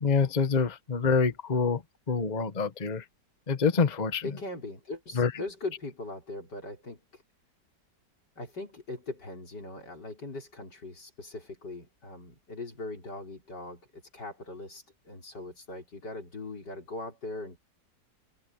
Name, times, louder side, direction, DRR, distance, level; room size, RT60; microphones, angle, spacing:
voice 1, 0.0-1.8 2.1-3.0 3.5-4.2 5.1-5.3, left 5 dB, 30° left, 1.2 m, -26 dB
voice 2, 4.2-7.2 8.4-17.6, left 2 dB, 85° left, 6.1 m, -40 dB
omnidirectional pair, 1.8 m